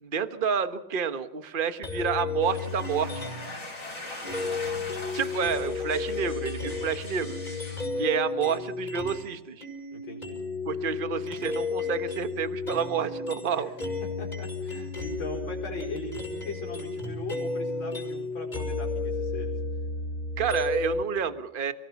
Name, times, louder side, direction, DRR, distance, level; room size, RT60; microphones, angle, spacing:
voice 1, 0.0-3.2 5.1-7.4 8.0-9.7 10.7-13.7 20.4-21.7, right 7 dB, 30° right, 11 dB, 1.2 m, -29 dB
sound 1, 1.8-3.6 4.2-9.3 9.6-21.0, left 3 dB, 20° left, 6.3 m, -33 dB
sound 2, 2.4-7.9, left 2 dB, 40° left, 5.5 m, -41 dB
voice 2, 4.2-4.6 7.9-8.2 9.9-10.4 13.6-13.7 14.2-19.6, left 3 dB, 75° left, -1 dB, 5.5 m, -39 dB
29.5 x 19.0 x 5.9 m, 0.82 s
omnidirectional pair, 2.2 m